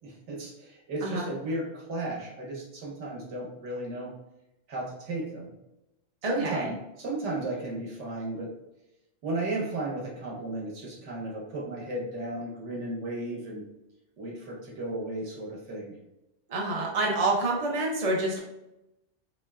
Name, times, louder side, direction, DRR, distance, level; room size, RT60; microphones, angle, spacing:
voice 1, 0.0-4.1 4.7-5.5 6.2-8.5 9.2-13.6 14.2-15.9, right 2 dB, 75° right, -2 dB, 1.2 m, -34 dB
voice 2, 6.2-6.7 16.5-18.4, right 2 dB, 50° right, -2 dB, 0.4 m, -27 dB
3.2 x 3.0 x 2.2 m, 0.92 s
omnidirectional pair, 1.2 m